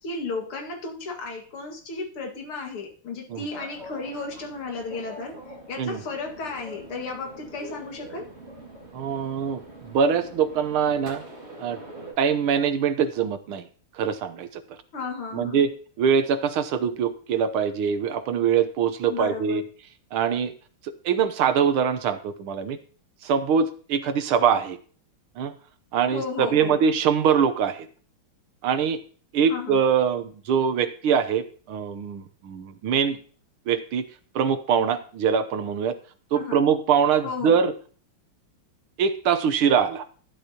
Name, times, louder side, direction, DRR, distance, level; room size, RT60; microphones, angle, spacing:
voice 1, 0.0-5.4 5.7-8.3 14.9-15.7 19.1-19.6 26.1-26.8 29.5-29.8 36.3-36.7 37.2-37.6, left 4 dB, 80° left, 2 dB, 2.9 m, -34 dB
sound 1, 3.5-12.1, right 2 dB, 30° right, 2.3 m, -43 dB
voice 2, 8.9-11.2 11.6-11.8 12.2-13.7 14.0-14.8 15.3-15.7 16.0-19.6 20.1-20.5 21.1-22.8 23.2-24.8 25.4-25.5 25.9-27.9 28.6-29.0 29.3-33.2 33.7-34.1 34.4-36.0 36.3-37.7 39.0-40.1, right 7 dB, 75° right, 10 dB, 1.8 m, -23 dB
13.0 x 12.0 x 2.9 m, 0.42 s
omnidirectional pair, 2.4 m